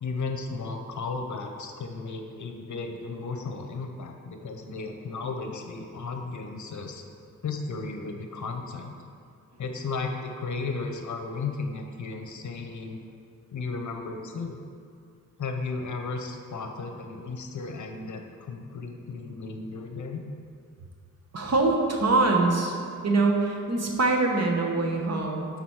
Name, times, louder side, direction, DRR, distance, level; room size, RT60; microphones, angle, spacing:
voice 1, 0.0-7.0 7.4-8.9 9.6-13.1 13.5-14.6 15.4-20.2, left 4 dB, 60° left, 4 dB, 0.8 m, -34 dB
voice 2, 21.3-22.8 23.0-25.5, right 3 dB, 50° right, 1 dB, 1.2 m, -24 dB
9.6 x 4.0 x 4.7 m, 2.3 s
cardioid pair, 85°, 33 cm